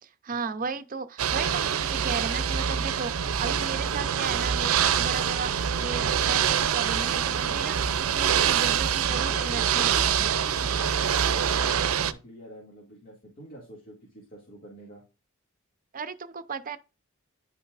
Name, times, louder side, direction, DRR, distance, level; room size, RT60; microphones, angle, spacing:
voice 1, 0.0-10.3 15.9-16.8, right 4 dB, 40° right, 0.6 m, -35 dB
Ocean / Boat Water vehicle, 1.2-12.1, right 8 dB, 90° right, 0.5 m, -25 dB
voice 2, 9.1-15.0, equal, 45° left, 2.1 m, -46 dB
10.0 x 5.6 x 2.5 m
head